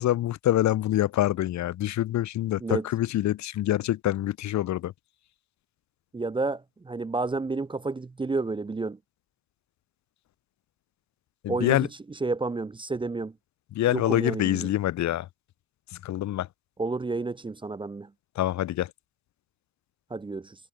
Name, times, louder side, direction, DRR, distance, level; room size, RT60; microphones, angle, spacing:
voice 1, 0.0-4.9 11.4-11.9 13.7-15.3 16.0-16.5 18.4-18.9, left 13 dB, 65° left, 0.8 m, -26 dB
voice 2, 6.1-9.0 11.5-11.9 12.2-13.3 13.9-14.7 16.8-18.1 20.1-20.6, right 3 dB, 15° right, 0.6 m, -30 dB
cardioid pair, 90°, 30 cm